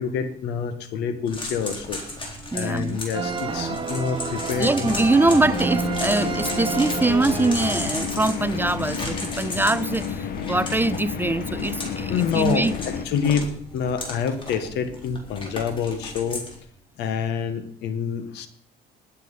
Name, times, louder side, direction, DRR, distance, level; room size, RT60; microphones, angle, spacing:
voice 1, 0.0-2.0 2.5-4.9 9.5-9.6 12.1-16.4 17.0-18.5, left 7 dB, 85° left, 1.7 m, -27 dB
sound 1, 1.3-16.6, left 1 dB, 30° left, 3.9 m, -36 dB
voice 2, 2.5-3.0 4.6-12.7, right 2 dB, 10° right, 0.5 m, -23 dB
sound 2, 3.1-8.4, right 4 dB, 30° right, 1.9 m, -29 dB
sound 3, 4.9-13.1, left 7 dB, 65° left, 1.6 m, -31 dB
20.5 x 7.8 x 5.6 m
cardioid pair, 110°, 17 cm